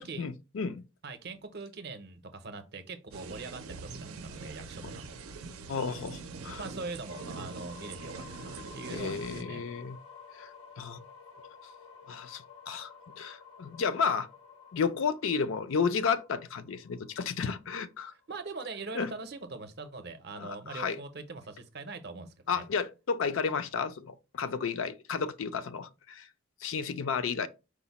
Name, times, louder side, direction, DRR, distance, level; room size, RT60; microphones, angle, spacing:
voice 1, 0.2-0.9 5.7-6.6 8.9-10.0 10.4-10.5 10.8-11.0 12.1-14.3 14.7-18.1 18.9-19.1 20.4-21.0 22.5-26.3 26.6-27.5, left 5 dB, 65° left, 0.4 m, -32 dB
voice 2, 1.0-5.2 6.6-9.6 18.1-22.7, right 3 dB, 50° right, 0.6 m, -42 dB
sound 1, 3.1-9.4, right 4 dB, 90° right, 0.5 m, -43 dB
sound 2, 7.1-18.9, left 6 dB, 90° left, 1.1 m, -52 dB
4.8 x 2.1 x 4.0 m
head